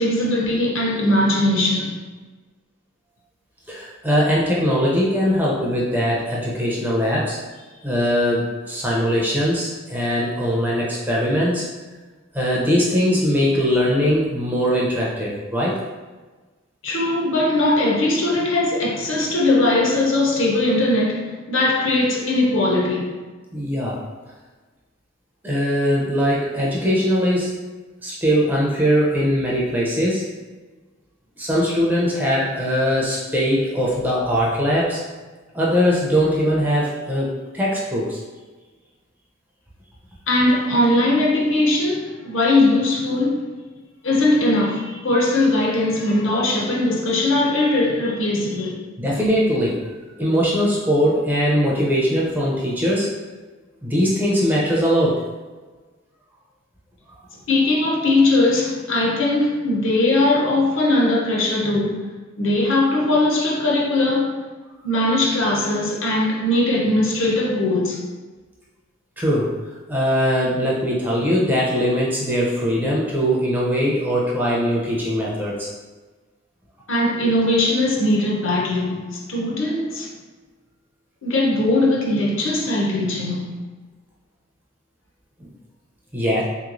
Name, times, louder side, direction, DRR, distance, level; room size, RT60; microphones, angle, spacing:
voice 1, 0.0-2.0 16.8-23.2 40.3-43.5 44.0-48.8 57.5-62.0 62.4-64.4 64.8-68.0 76.9-80.1 81.2-83.5, left 2 dB, 65° left, 0.7 m, -20 dB
voice 2, 3.7-7.4 7.8-11.7 12.3-15.8 23.5-24.0 25.4-27.6 28.0-30.3 31.4-35.0 35.5-38.2 49.0-49.8 50.2-53.2 53.8-55.2 69.2-69.6 69.9-75.7 85.4-85.5 86.1-86.4, equal, 10° right, 0.4 m, -21 dB
3.1 x 3.0 x 2.5 m
head